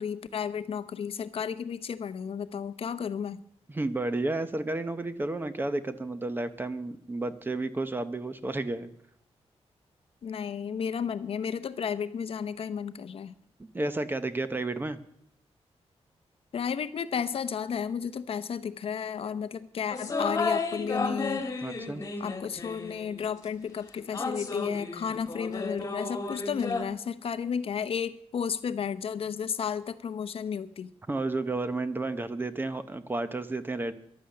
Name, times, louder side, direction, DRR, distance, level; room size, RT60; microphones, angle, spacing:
voice 1, 0.0-3.4 10.2-13.3 16.5-21.4 22.2-30.9, left 7 dB, 55° left, 13 dB, 0.7 m, -33 dB
voice 2, 3.7-8.9 13.7-15.0 21.6-22.1 31.1-33.9, right 2 dB, 20° right, 11 dB, 0.8 m, -31 dB
sound 1, 19.9-23.3 24.1-26.8, left 3 dB, 30° left, 1.7 m, -33 dB
14.5 x 11.5 x 6.6 m, 0.70 s
wide cardioid pair, 170°, 11 cm